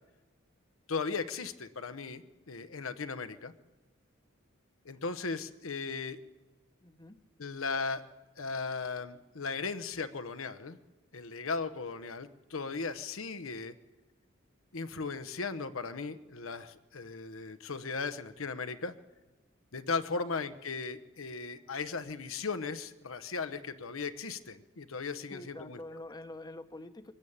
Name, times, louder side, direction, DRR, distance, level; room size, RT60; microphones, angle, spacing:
voice 1, 0.9-3.5 4.8-6.2 7.4-8.0 8.4-10.8 11.1-13.7 14.7-18.9 19.7-25.8, left 4 dB, 80° left, 10 dB, 1.0 m, -37 dB
voice 2, 6.8-7.2 20.1-20.3 25.3-27.1, left 2 dB, 20° left, 10 dB, 0.9 m, -46 dB
22.5 x 13.5 x 8.7 m, 1.2 s
head